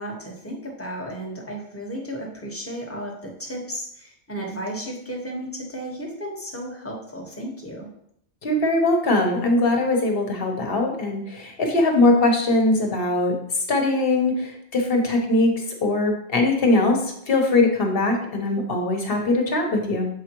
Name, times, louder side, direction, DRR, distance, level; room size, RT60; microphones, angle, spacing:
voice 1, 0.0-7.9, right 1 dB, 10° left, -2 dB, 1.3 m, -34 dB
voice 2, 8.4-20.1, left 2 dB, 55° left, 2 dB, 1.3 m, -21 dB
7.2 x 4.9 x 3.0 m, 0.72 s
omnidirectional pair, 1.2 m